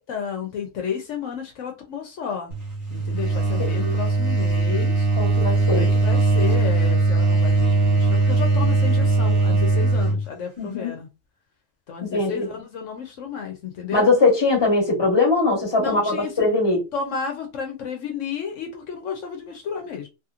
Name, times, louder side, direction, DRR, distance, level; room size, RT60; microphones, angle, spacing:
voice 1, 0.0-2.5 2.9-5.1 5.7-11.1 11.9-14.1 15.8-16.4 16.9-20.1, left 6 dB, 75° left, 1.0 m, -32 dB
sound 1, 2.5-10.2, right 3 dB, 65° right, 1.3 m, -20 dB
voice 2, 3.6-3.9 5.2-5.8 10.6-10.9 12.0-12.5 13.9-16.8, left 3 dB, 20° left, 1.2 m, -21 dB
3.0 x 2.8 x 2.4 m
omnidirectional pair, 1.3 m